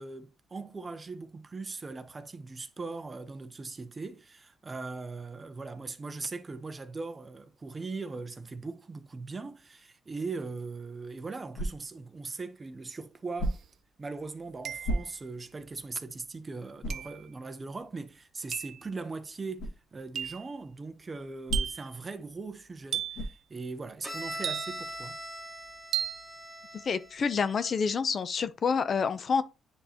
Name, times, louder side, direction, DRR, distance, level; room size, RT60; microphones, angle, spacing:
voice 1, 0.0-13.6 14.0-25.2, right 3 dB, 30° right, 0.8 m, -40 dB
sound 1, 11.5-12.1 13.4-13.9 14.8-15.5 16.0-16.1 16.8-17.2 19.6-19.8 21.5-22.0 23.1-23.5, right 1 dB, 75° left, 2.1 m, -33 dB
sound 2, 13.5-13.6 14.6-15.2 16.9-17.2 18.5-18.8 20.1-20.5 21.5-21.9 22.9-23.3 24.4-25.0 25.9-26.3, right 9 dB, 65° right, 0.3 m, -35 dB
Bowed string instrument, 24.0-27.8, right 1 dB, 5° right, 2.3 m, -41 dB
voice 2, 26.7-29.4, left 5 dB, 50° left, 0.5 m, -28 dB
9.7 x 3.8 x 2.8 m
cardioid pair, 90°, 0 cm